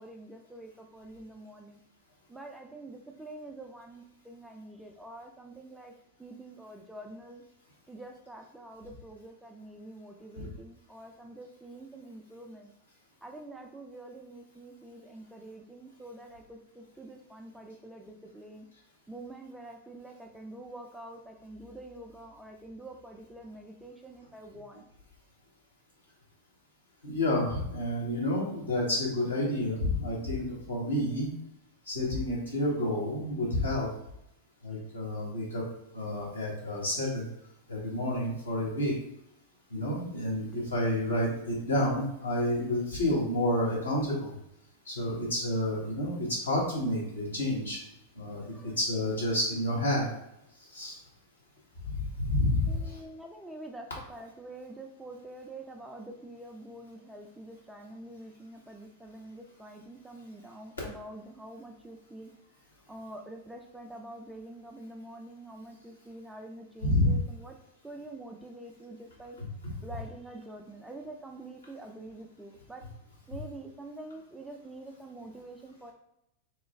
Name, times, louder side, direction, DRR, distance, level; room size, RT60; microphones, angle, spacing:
voice 1, 0.0-1.8 2.3-5.9 6.2-7.4 7.9-12.7 13.2-18.7 19.1-24.8 48.4-48.8 52.7-62.3 62.9-67.5 67.8-69.4 69.8-72.8 73.3-75.9, right 1 dB, 5° right, 2 dB, 0.4 m, -46 dB
voice 2, 27.0-31.3 31.8-33.9 34.6-35.7 35.9-37.3 37.7-38.9 39.7-44.3 44.8-47.8 48.1-50.1 50.6-51.0 51.8-53.0 66.8-67.1 69.4-69.7, left 1 dB, 75° left, -5 dB, 1.3 m, -29 dB
3.1 x 2.2 x 3.2 m, 0.82 s
figure-of-eight pair, 90°, 0 cm